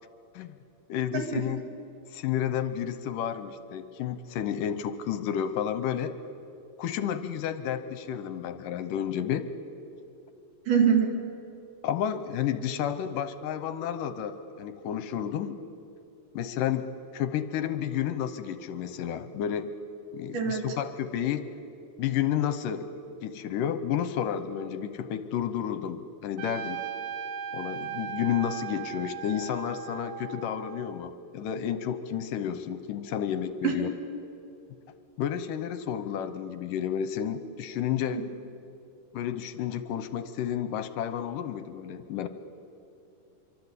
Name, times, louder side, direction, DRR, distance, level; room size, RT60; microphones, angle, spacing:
voice 1, 0.9-1.6 2.1-6.1 6.8-9.5 11.8-15.6 16.3-19.7 20.1-21.5 22.0-26.8 27.5-33.9 35.2-38.2 39.1-42.3, left 9 dB, 75° left, 11 dB, 2.2 m, -31 dB
voice 2, 10.7-11.1 20.3-20.6 33.6-33.7 38.1-38.2, right 7 dB, 55° right, 2 dB, 4.0 m, -24 dB
Trumpet, 26.4-31.1, right 9 dB, 75° right, 3.0 m, -38 dB
26.0 x 24.0 x 8.3 m, 2.7 s
omnidirectional pair, 4.6 m